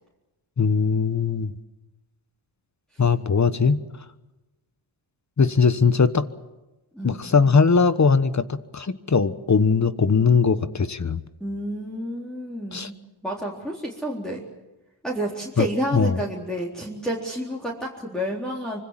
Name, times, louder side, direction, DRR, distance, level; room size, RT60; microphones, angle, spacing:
voice 1, 0.6-1.5 3.0-3.8 5.4-6.3 7.0-11.2 12.7-12.9 15.6-15.7 15.9-16.2, left 5 dB, 35° left, 13 dB, 1.2 m, -20 dB
voice 2, 11.4-14.4 15.0-18.8, equal, ahead, -5 dB, 3.8 m, -30 dB
25.5 x 24.0 x 7.5 m, 1.1 s
wide cardioid pair, 95°, 48 cm